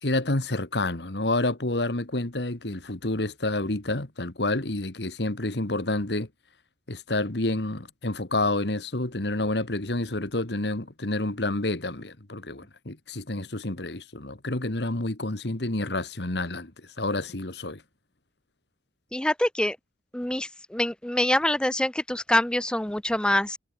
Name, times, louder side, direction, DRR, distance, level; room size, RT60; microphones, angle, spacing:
voice 1, 0.0-6.3 6.9-16.7 17.0-17.8, left 2 dB, 70° left, 2.1 m, -29 dB
voice 2, 19.1-19.8 20.1-23.6, left 1 dB, 5° left, 0.5 m, -25 dB
head